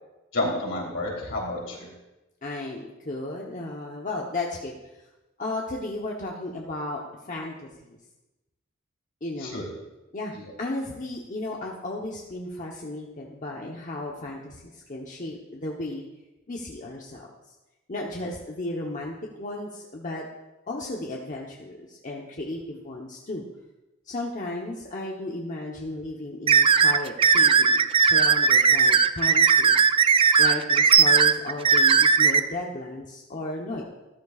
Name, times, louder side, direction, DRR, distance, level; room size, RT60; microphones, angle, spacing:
voice 1, 0.3-1.9 9.4-9.6 10.3-10.5, left 2 dB, 70° left, -3 dB, 3.4 m, -30 dB
voice 2, 2.4-4.7 5.4-7.0 7.3-8.0 9.2-9.6 10.1-10.3 10.6-16.0 16.5-17.3 17.9-20.3 20.7-23.4 24.1-29.9 30.4-33.8, left 2 dB, 40° left, -1 dB, 1.0 m, -34 dB
sound 1, 26.5-32.4, right 6 dB, 25° right, 0.4 m, -18 dB
13.5 x 13.0 x 2.4 m, 1.0 s
head